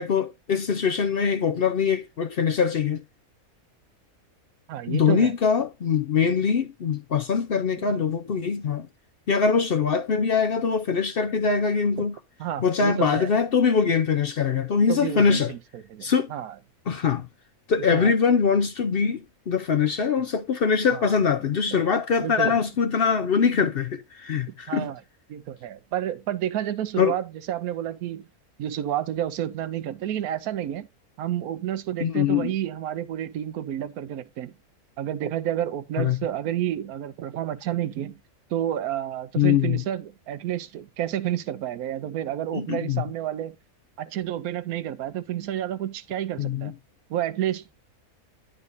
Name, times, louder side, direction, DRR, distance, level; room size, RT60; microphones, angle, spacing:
voice 1, 0.0-3.0 4.9-8.9 9.3-12.2 12.6-15.5 16.0-16.3 16.9-17.3 17.7-24.9 27.0-27.1 32.0-32.5 36.0-36.2 39.4-39.8 42.5-43.0 46.4-46.7, left 6 dB, 55° left, 0.7 m, -23 dB
voice 2, 4.7-5.3 7.8-7.9 12.4-13.3 14.9-16.5 17.8-18.1 20.9-21.1 21.7-21.9 22.2-22.6 24.7-25.0 25.3-28.2 28.6-30.9 31.2-34.5 35.0-38.2 38.5-43.5 44.0-46.7 47.1-47.8, right 11 dB, 80° right, 1.1 m, -30 dB
9.6 x 4.1 x 3.9 m
omnidirectional pair, 1.5 m